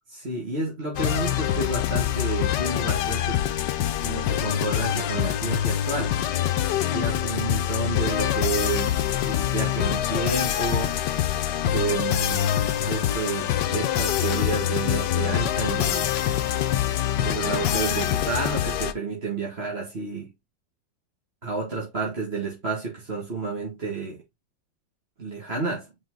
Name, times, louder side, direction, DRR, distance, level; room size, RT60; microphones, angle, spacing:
voice 1, 0.1-3.4 4.0-6.2 6.9-10.9 11.6-16.1 17.2-20.3 21.4-24.2 25.2-25.9, right 4 dB, 30° right, 2.2 m, -30 dB
sound 1, 1.0-18.9, left 11 dB, 70° left, 1.3 m, -25 dB
5.5 x 5.3 x 3.8 m
omnidirectional pair, 2.1 m